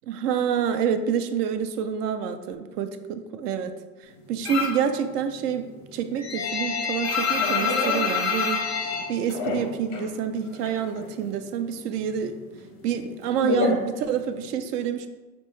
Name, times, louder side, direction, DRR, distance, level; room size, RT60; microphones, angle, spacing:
voice 1, 0.1-3.7 4.3-8.6 9.1-12.4 12.8-15.1, right 8 dB, 75° right, 9 dB, 0.6 m, -27 dB
sound 1, 4.5-4.9 5.2-10.1 10.4-11.4 11.7-14.5, left 4 dB, 25° left, 0.4 m, -27 dB
4.4 x 2.9 x 3.0 m, 1.2 s
supercardioid pair, 145°, 48 cm